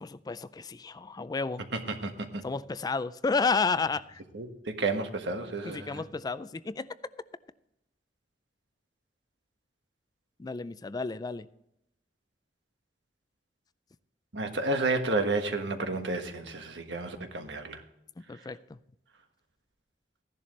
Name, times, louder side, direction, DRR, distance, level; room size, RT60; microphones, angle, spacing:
voice 1, 0.0-1.6 2.4-4.2 5.7-6.9 10.4-11.5 18.3-18.8, left 4 dB, 20° left, 0.4 m, -31 dB
voice 2, 1.7-2.4 4.3-6.0 14.3-17.8, right 2 dB, 85° right, 1.4 m, -31 dB
15.0 x 11.0 x 3.2 m
head